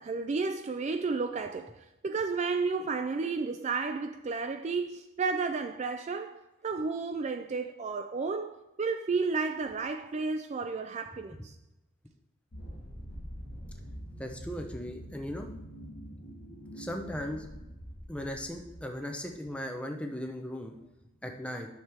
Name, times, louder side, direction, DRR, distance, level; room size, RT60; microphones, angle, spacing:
voice 1, 0.0-11.5, right 4 dB, 35° right, 0.3 m, -32 dB
sound 1, 12.5-19.3, equal, 50° left, 1.4 m, -45 dB
voice 2, 14.2-15.5 16.7-17.5 18.1-20.7 21.2-21.7, equal, 5° left, 0.8 m, -37 dB
11.0 x 6.4 x 3.5 m
head